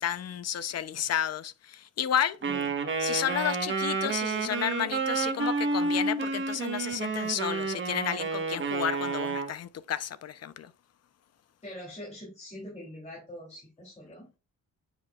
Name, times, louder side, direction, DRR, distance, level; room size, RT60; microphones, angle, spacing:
voice 1, 0.0-2.4 3.0-10.7, left 10 dB, 55° left, 0.7 m, -32 dB
Wind instrument woodwind instrument, 2.4-9.5, right 4 dB, 40° right, 1.3 m, -30 dB
voice 2, 11.6-14.3, equal, 20° left, 3.2 m, -43 dB
8.8 x 5.1 x 2.4 m
wide cardioid pair, 135°, 30 cm